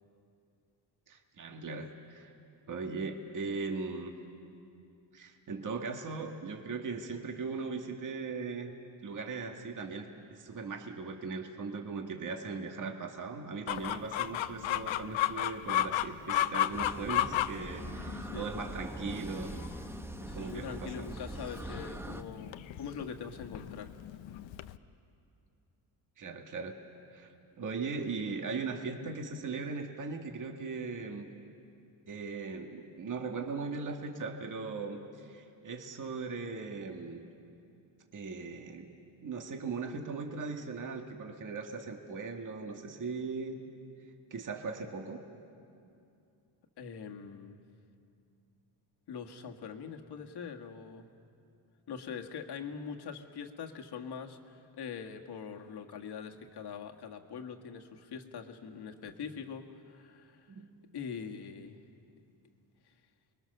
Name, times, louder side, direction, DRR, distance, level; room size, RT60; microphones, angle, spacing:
voice 1, 1.1-2.3 2.7-4.1 5.1-8.7 9.0-19.5 20.3-21.1 26.2-26.8 27.1-27.3 27.6-31.3 32.1-37.2 38.1-38.9 39.2-43.6 44.3-45.2 60.5-60.7, right 4 dB, 40° right, 3 dB, 1.9 m, -39 dB
Chicken rooster, 13.7-24.8, left 12 dB, 80° left, 0.8 m, -34 dB
sound 1, 16.7-22.2, right 1 dB, 5° right, 0.9 m, -42 dB
voice 2, 20.3-23.9 46.8-47.6 49.1-51.1 51.9-60.6 60.9-61.8 62.8-62.9, left 6 dB, 60° left, 3 dB, 1.9 m, -43 dB
29.5 x 21.5 x 6.7 m, 2.6 s
cardioid pair, 110°, 45 cm